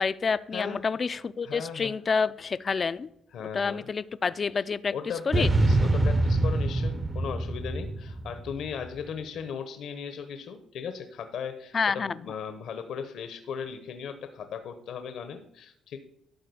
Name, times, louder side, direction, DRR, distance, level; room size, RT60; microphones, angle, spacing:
voice 1, 0.0-3.1 3.5-4.9 5.3-5.5 11.7-12.2, left 5 dB, 40° left, 14 dB, 0.4 m, -28 dB
voice 2, 0.5-0.9 1.4-1.9 3.3-3.8 4.9-16.0, left 7 dB, 75° left, 9 dB, 0.9 m, -37 dB
sound 1, 5.3-8.8, right 2 dB, 25° right, 0.7 m, -25 dB
12.0 x 4.0 x 6.9 m, 0.76 s
cardioid pair, 90°, 0 cm